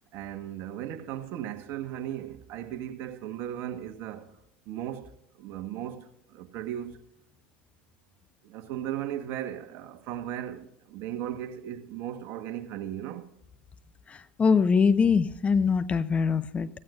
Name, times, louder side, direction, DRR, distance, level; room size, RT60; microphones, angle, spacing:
voice 1, 0.1-4.3 4.6-7.0 8.4-13.3, right 11 dB, 50° right, 1.4 m, -37 dB
voice 2, 14.1-16.7, left 5 dB, 25° left, 0.7 m, -23 dB
15.5 x 15.0 x 2.6 m
hypercardioid pair, 80°, 5 cm